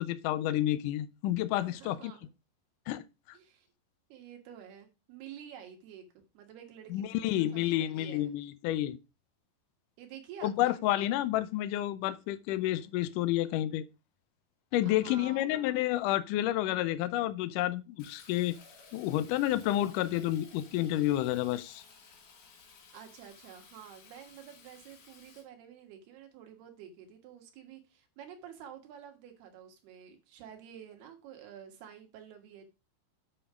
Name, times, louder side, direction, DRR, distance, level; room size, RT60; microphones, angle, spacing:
voice 1, 0.0-2.1 2.9-3.1 6.9-9.0 10.4-13.8 14.7-18.6 18.9-21.8, left 14 dB, 85° left, 1.8 m, -30 dB
voice 2, 1.7-2.3 3.3-3.7 4.1-8.3 10.0-10.8 14.8-15.7 22.9-32.6, right 8 dB, 80° right, 3.5 m, -50 dB
Fill (with liquid), 18.0-25.4, left 5 dB, 70° left, 4.0 m, -56 dB
8.6 x 5.2 x 4.9 m
omnidirectional pair, 4.6 m